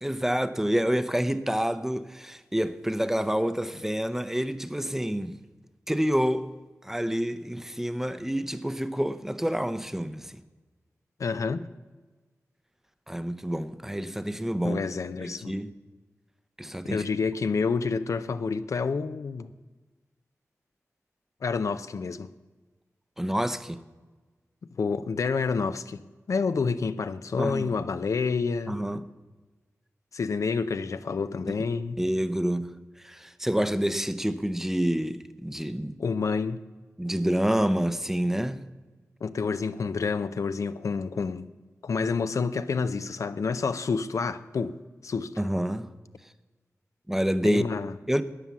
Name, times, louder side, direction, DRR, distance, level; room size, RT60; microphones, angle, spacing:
voice 1, 0.0-5.4 5.9-6.5 6.8-10.3 13.1-14.8 15.2-15.7 16.6-17.0 23.2-23.8 27.4-27.7 28.7-29.0 32.0-32.7 33.0-35.9 37.0-38.6 45.4-45.9 47.1-47.6 48.1-48.2, equal, 5° right, 0.6 m, -28 dB
voice 2, 11.2-11.7 14.6-15.5 16.8-19.5 21.4-22.3 24.6-26.0 26.3-28.8 30.1-32.0 36.0-36.6 39.2-41.5 41.8-45.4 47.4-47.9, left 5 dB, 70° left, 0.6 m, -28 dB
13.0 x 9.6 x 7.2 m
wide cardioid pair, 100°, 6 cm